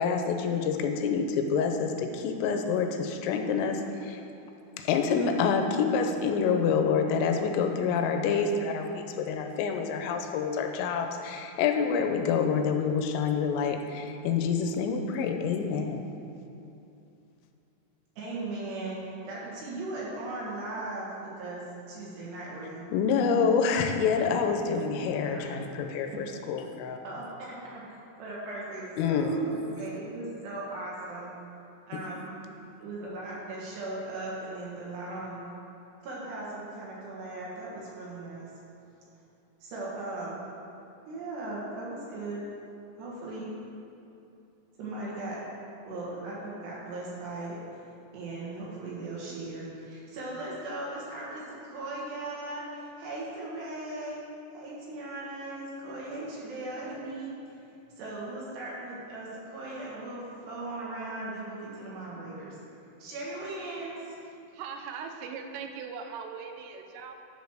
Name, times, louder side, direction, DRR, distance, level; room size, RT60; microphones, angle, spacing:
voice 1, 0.0-4.2 4.8-16.0 22.9-27.0 29.0-29.4, left 6 dB, 85° left, 5 dB, 3.3 m, -27 dB
voice 2, 18.2-19.0 19.3-22.9 25.3-25.7 27.0-27.9 28.2-31.3 31.9-32.3 32.8-35.4 36.0-38.5 39.6-40.5 41.1-42.4 43.0-43.5 44.8-45.4 45.9-47.8 48.1-54.2 54.5-57.3 58.0-62.6 63.0-64.1, right 2 dB, 65° right, -6 dB, 3.5 m, -38 dB
voice 3, 64.5-67.1, right 6 dB, 85° right, 4 dB, 3.2 m, -40 dB
11.0 x 5.2 x 6.4 m, 2.7 s
omnidirectional pair, 5.9 m